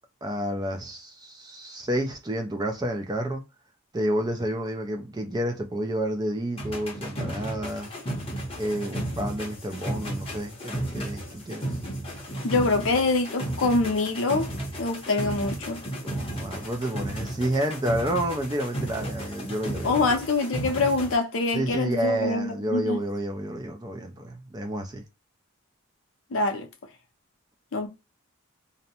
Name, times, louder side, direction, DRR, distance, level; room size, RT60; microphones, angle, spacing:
voice 1, 0.2-3.4 3.9-7.9 8.6-11.7 16.0-20.1 21.5-25.0, right 1 dB, 20° right, 0.3 m, -30 dB
sound 1, 6.6-21.2, right 1 dB, 25° left, 0.7 m, -34 dB
voice 2, 12.4-14.5 14.8-15.8 19.8-23.0 26.3-26.7 27.7-27.9, left 3 dB, 65° left, 0.5 m, -25 dB
2.6 x 2.1 x 2.7 m
head